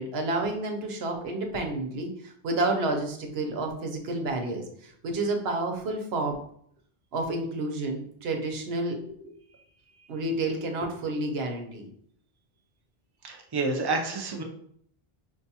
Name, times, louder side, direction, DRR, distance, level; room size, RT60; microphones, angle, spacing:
voice 1, 0.0-6.4 7.1-9.3 10.1-11.8, right 2 dB, 85° right, 3 dB, 0.9 m, -30 dB
voice 2, 13.2-14.4, right 3 dB, 35° right, 2 dB, 0.4 m, -29 dB
5.3 x 2.3 x 2.8 m, 0.67 s
omnidirectional pair, 1.0 m